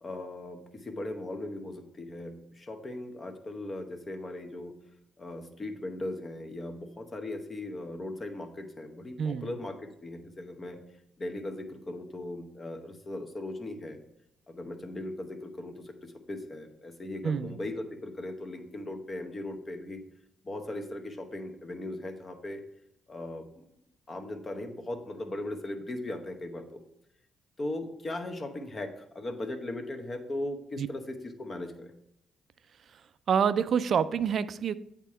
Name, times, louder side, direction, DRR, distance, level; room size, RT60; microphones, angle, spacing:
voice 1, 0.0-4.8 5.2-10.8 11.2-14.0 14.5-20.0 20.4-22.6 23.1-23.6 24.1-26.8 27.6-31.9, left 1 dB, 30° left, 0.9 m, -38 dB
voice 2, 9.2-9.5 17.2-17.5 30.8-30.9 33.3-34.7, right 7 dB, 55° right, 0.3 m, -27 dB
8.2 x 3.6 x 4.3 m
cardioid pair, 90°, 0 cm